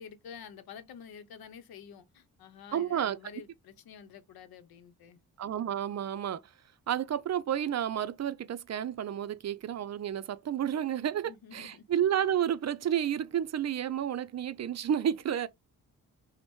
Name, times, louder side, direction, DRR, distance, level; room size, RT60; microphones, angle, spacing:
voice 1, 0.0-5.2 11.2-11.8, left 7 dB, 85° left, 0.8 m, -49 dB
voice 2, 2.7-3.2 5.4-6.4 6.9-15.5, right 10 dB, 50° right, 0.5 m, -31 dB
5.2 x 2.1 x 3.1 m
cardioid pair, 110°, 35 cm